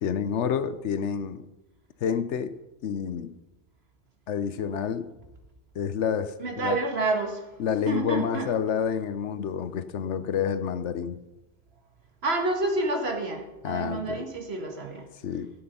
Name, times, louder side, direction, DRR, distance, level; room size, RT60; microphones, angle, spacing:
voice 1, 0.0-1.5 2.0-3.3 4.3-5.1 5.7-6.8 7.6-11.2 13.6-14.3 15.2-15.5, left 7 dB, 80° left, 12 dB, 1.0 m, -29 dB
voice 2, 6.4-7.5 7.9-8.5 12.2-15.1, right 2 dB, 60° right, 4 dB, 1.9 m, -28 dB
16.0 x 7.8 x 5.6 m, 1.0 s
omnidirectional pair, 1.2 m